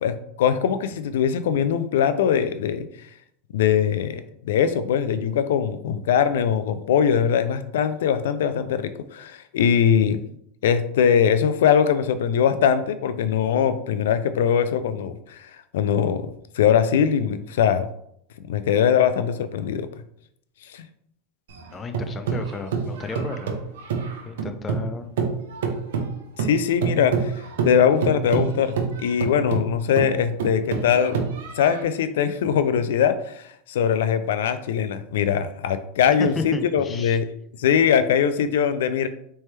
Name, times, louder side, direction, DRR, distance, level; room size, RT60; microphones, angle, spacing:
voice 1, 0.0-2.8 3.5-10.2 10.6-16.3 16.5-17.9 18.5-19.9 20.7-20.8 26.4-28.8 29.0-31.2 31.6-37.3 37.6-39.1, left 8 dB, 85° left, 11 dB, 0.3 m, -21 dB
sound 1, 21.5-24.9 25.2-31.8, right 6 dB, 85° right, 0.8 m, -27 dB
voice 2, 21.7-23.5 24.3-25.1 36.1-37.2, left 4 dB, 20° left, 7 dB, 0.5 m, -32 dB
4.2 x 3.3 x 3.2 m, 0.71 s
supercardioid pair, 125°, 0 cm